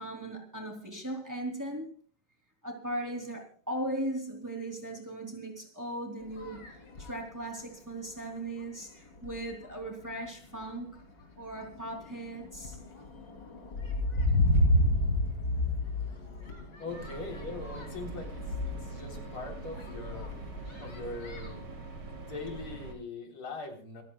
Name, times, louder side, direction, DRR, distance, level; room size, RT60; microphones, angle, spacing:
voice 1, 0.0-1.9 2.6-6.6 7.0-11.0 11.4-12.8, right 1 dB, 10° right, 3.0 m, -38 dB
sound 1, 6.2-7.3 8.0-8.1 8.6-8.9 9.2-9.8 10.4-10.7 11.1-21.7, left 1 dB, 55° left, 3.8 m, -32 dB
voice 2, 16.8-20.3 20.8-21.7 22.0-24.0, left 3 dB, 80° left, 4.6 m, -41 dB
sound 2, 16.9-22.9, right 3 dB, 70° right, 2.9 m, -43 dB
27.0 x 15.5 x 2.3 m
omnidirectional pair, 2.3 m